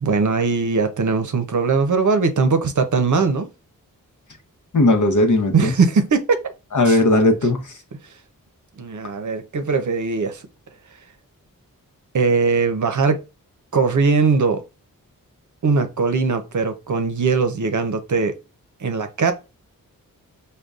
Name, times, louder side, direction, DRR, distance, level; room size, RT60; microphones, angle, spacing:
voice 1, 0.0-3.5 5.5-6.4 6.9-7.0 8.8-10.4 12.1-13.2 13.7-14.6 15.6-18.3 18.8-19.3, right 4 dB, 55° right, 0.7 m, -20 dB
voice 2, 4.7-5.7 6.7-7.8, left 2 dB, 55° left, 0.9 m, -17 dB
5.1 x 2.2 x 2.4 m
cardioid pair, 50°, 35 cm